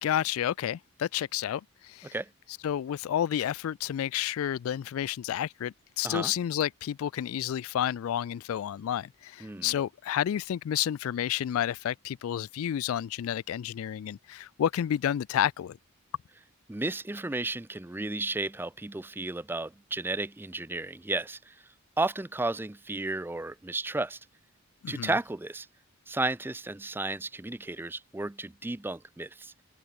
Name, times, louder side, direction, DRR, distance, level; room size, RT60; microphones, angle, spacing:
voice 1, 0.0-2.1 2.6-15.8 24.8-25.1, left 10 dB, 75° left, 0.3 m, -30 dB
voice 2, 9.4-9.8 16.7-21.6 22.0-24.2 24.9-25.7 26.1-29.5, right 2 dB, 10° right, 0.4 m, -33 dB
open air
head